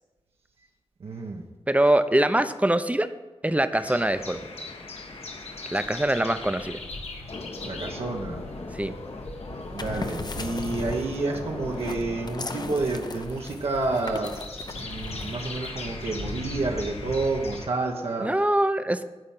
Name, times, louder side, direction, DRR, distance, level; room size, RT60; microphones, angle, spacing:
voice 1, 1.0-1.4 7.6-8.4 9.7-14.3 14.7-18.3, right 3 dB, 75° right, -1 dB, 1.2 m, -29 dB
voice 2, 1.7-3.1 3.4-4.4 5.7-6.8 8.7-8.9 18.2-19.0, right 1 dB, 15° right, 11 dB, 0.7 m, -23 dB
sound 1, 3.7-6.9 7.3-13.9 14.7-17.7, left 2 dB, 60° left, 1.2 m, -41 dB
sound 2, 3.8-17.7, left 2 dB, 85° left, 1.2 m, -39 dB
sound 3, 9.6-15.7, left 3 dB, 40° left, 0.7 m, -40 dB
10.5 x 4.3 x 7.6 m, 1.2 s
cardioid pair, 45°, 10 cm